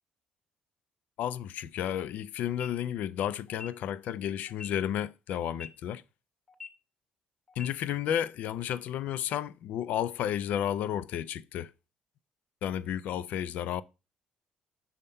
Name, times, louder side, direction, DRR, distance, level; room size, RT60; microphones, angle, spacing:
voice 1, 1.2-6.0 7.6-11.7 12.6-13.8, left 10 dB, 75° left, 0.4 m, -32 dB
sound 1, 2.5-2.7 3.5-3.7 4.5-4.7 5.5-5.7 6.5-6.7 7.5-7.7, left 5 dB, 15° left, 1.2 m, -43 dB
5.6 x 3.5 x 5.2 m
supercardioid pair, 75°, 3 cm